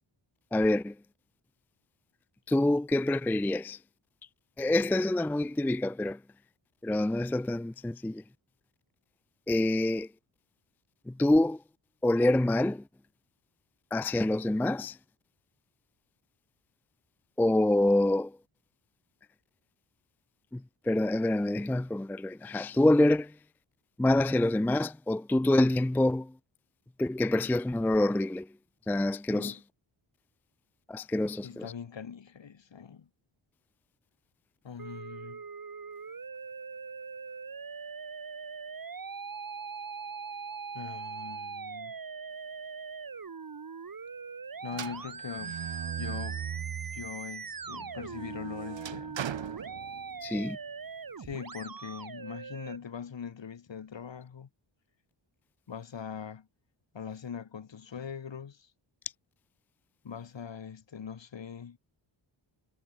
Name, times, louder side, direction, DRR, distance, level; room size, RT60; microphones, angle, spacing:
voice 1, 0.5-1.0 2.5-3.8 4.6-6.2 6.8-8.2 9.5-10.1 11.1-11.6 12.0-12.8 13.9-15.0 17.4-18.4 20.5-23.4 24.0-26.3 27.0-28.5 28.9-29.6 30.9-31.7 50.2-50.6, left 1 dB, 5° left, 0.4 m, -26 dB
voice 2, 31.4-33.1 34.6-35.4 40.7-41.9 44.6-45.7 46.0-46.4 46.9-49.2 51.2-54.5 55.7-56.5 56.9-58.7 60.0-61.8, left 7 dB, 65° left, 4.3 m, -42 dB
Musical instrument, 34.8-52.8, right 5 dB, 45° right, 3.7 m, -41 dB
sound 1, 44.7-47.1 47.6-50.4, right 9 dB, 70° right, 1.3 m, -39 dB
wide cardioid pair, 100°, 47 cm